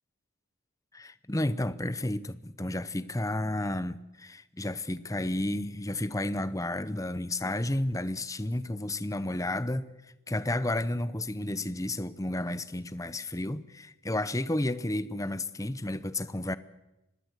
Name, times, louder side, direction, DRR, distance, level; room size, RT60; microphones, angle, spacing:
voice 1, 0.9-9.9 10.3-16.6, left 1 dB, 15° left, 0.9 m, -32 dB
24.5 x 19.5 x 8.3 m
head